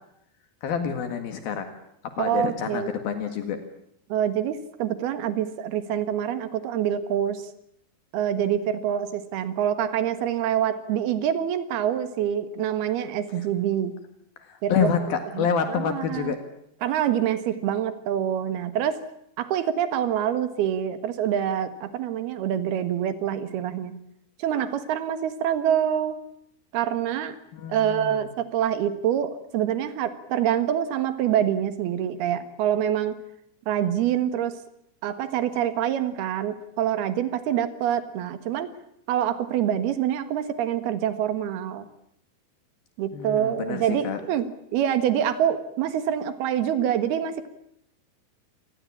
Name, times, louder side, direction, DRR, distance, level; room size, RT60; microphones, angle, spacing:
voice 1, 0.6-1.7 2.2-3.6 14.4-16.4 27.5-28.3 43.1-44.2, left 7 dB, 70° left, 8 dB, 3.6 m, -28 dB
voice 2, 2.2-2.9 4.1-7.5 8.1-14.0 14.6-14.9 15.4-16.4 16.8-19.1 19.4-23.9 24.4-26.2 26.7-27.4 27.7-33.2 33.7-34.6 35.0-38.7 39.1-41.9 43.0-47.5, right 10 dB, 80° right, 11 dB, 3.5 m, -26 dB
27.0 x 20.0 x 8.7 m, 0.75 s
omnidirectional pair, 4.5 m